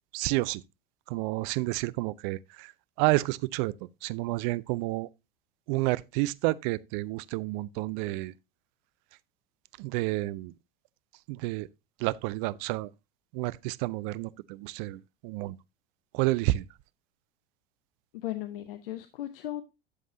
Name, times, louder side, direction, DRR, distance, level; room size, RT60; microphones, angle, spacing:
voice 1, 0.1-0.6 1.1-2.7 3.0-3.7 4.0-5.1 5.7-8.3 9.8-10.5 11.3-11.7 12.0-12.9 13.3-15.6 16.1-16.6, right 20 dB, 55° right, 0.5 m, -30 dB
voice 2, 18.1-19.6, left 14 dB, 70° left, 0.8 m, -36 dB
12.0 x 7.2 x 2.7 m
hypercardioid pair, 80°, 29 cm